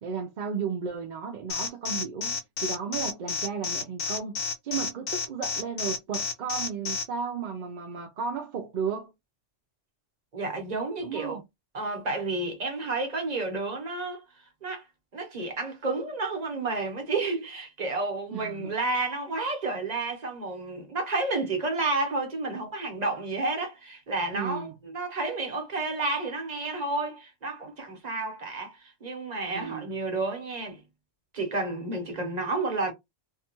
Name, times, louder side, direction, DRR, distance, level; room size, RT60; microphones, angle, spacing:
voice 1, 0.0-9.1 11.0-11.4 18.3-18.7 24.3-24.8 29.5-29.9, right 6 dB, 60° right, 0.5 m, -34 dB
Alarm, 1.5-7.0, left 5 dB, 85° left, 1.0 m, -30 dB
voice 2, 10.3-11.4 11.7-14.2 14.6-14.8 15.1-30.8 31.3-32.9, right 3 dB, 40° right, 1.0 m, -31 dB
2.7 x 2.3 x 2.9 m
omnidirectional pair, 1.2 m